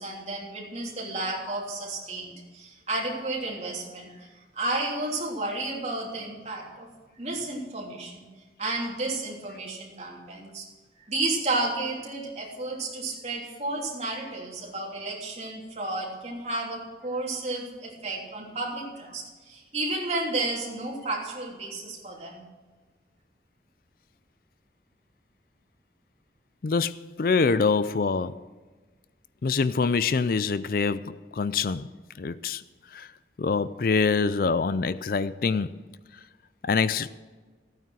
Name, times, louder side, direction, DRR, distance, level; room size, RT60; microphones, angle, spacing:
voice 1, 0.0-4.3 4.5-6.9 7.2-8.3 8.6-10.7 11.1-22.5, right 2 dB, 35° right, 3.1 m, -32 dB
voice 2, 26.6-28.4 29.4-31.9 32.2-32.6 32.9-33.1 33.4-35.8 36.7-37.1, left 4 dB, 55° left, 0.4 m, -25 dB
14.5 x 9.2 x 6.2 m
head